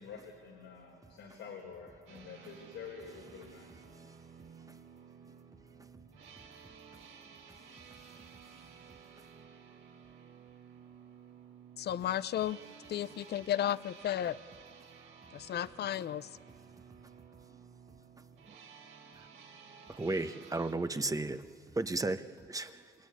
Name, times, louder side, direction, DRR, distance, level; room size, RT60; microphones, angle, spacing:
voice 1, 0.0-3.8, left 6 dB, 85° left, 0 dB, 4.3 m, -48 dB
sound 1, 2.1-20.7, right 6 dB, 85° right, 5.3 m, -55 dB
voice 2, 11.8-12.6 12.9-14.4 15.3-16.3, left 11 dB, 55° left, 16 dB, 0.6 m, -33 dB
voice 3, 19.9-21.4 21.7-22.8, right 2 dB, 15° right, 10 dB, 1.1 m, -34 dB
27.5 x 22.5 x 9.6 m, 2.4 s
cardioid pair, 90°, 20 cm